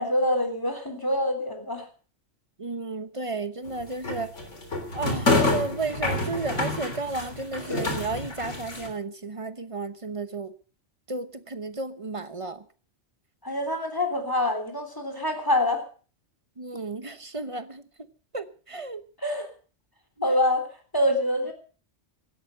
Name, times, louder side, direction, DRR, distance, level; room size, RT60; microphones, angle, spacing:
voice 1, 0.0-1.9 13.4-15.8 19.2-19.5 20.2-21.5, left 1 dB, 15° left, 3.4 m, -25 dB
voice 2, 2.6-4.3 4.9-10.5 11.1-12.6 16.6-17.8 18.3-19.0, right 3 dB, 30° right, 0.9 m, -33 dB
sound 1, 3.7-8.9, left 2 dB, 80° left, 3.8 m, -27 dB
16.5 x 13.0 x 5.4 m
omnidirectional pair, 1.2 m